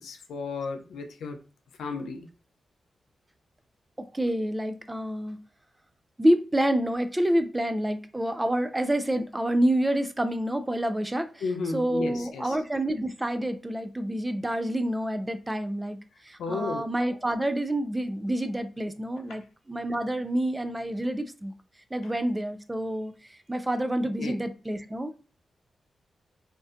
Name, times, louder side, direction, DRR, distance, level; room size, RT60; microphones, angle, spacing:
voice 1, 0.0-1.4 1.8-2.3 11.4-12.6 16.4-16.8 24.2-24.4, left 4 dB, 80° left, 0.3 m, -33 dB
voice 2, 4.0-5.4 6.2-11.3 11.7-16.0 16.2-19.4 19.7-21.5 21.9-25.2, right 1 dB, 20° right, 0.3 m, -28 dB
2.5 x 2.1 x 2.4 m
supercardioid pair, 40°, 0 cm